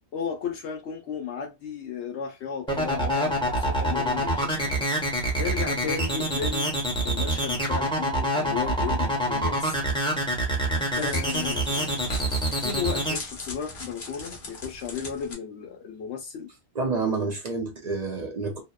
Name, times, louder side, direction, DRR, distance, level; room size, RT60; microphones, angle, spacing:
voice 1, 0.1-6.7 7.0-9.8 11.0-12.3 12.6-16.5, left 7 dB, 80° left, 0.9 m, -34 dB
sound 1, 2.7-13.1, right 1 dB, 5° left, 0.7 m, -26 dB
Crackle, 10.8-15.3, left 3 dB, 55° left, 1.0 m, -40 dB
voice 2, 16.8-18.6, right 4 dB, 50° right, 0.5 m, -28 dB
2.8 x 2.0 x 2.2 m
omnidirectional pair, 1.2 m